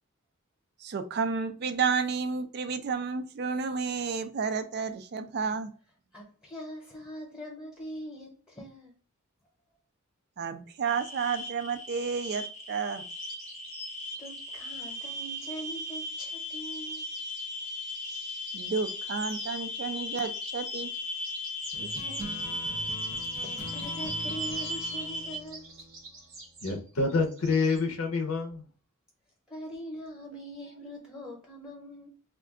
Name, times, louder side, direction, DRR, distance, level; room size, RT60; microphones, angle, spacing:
voice 1, 0.8-5.7 10.4-13.0 18.5-20.9 21.8-21.9, right 5 dB, 50° right, 0.4 m, -31 dB
voice 2, 6.1-8.9 14.2-17.1 21.9-22.6 23.1-25.7 29.5-32.1, equal, 15° left, 0.9 m, -43 dB
sound 1, 10.9-25.4, left 1 dB, 35° left, 0.6 m, -37 dB
sound 2, 13.1-14.4 15.7-21.0 21.2-22.3 22.8-27.8, right 2 dB, 90° right, 1.1 m, -48 dB
sound 3, 21.7-26.7, right 1 dB, 25° right, 0.7 m, -43 dB
voice 3, 26.6-28.6, left 4 dB, 80° left, 0.6 m, -27 dB
2.4 x 2.2 x 3.6 m
head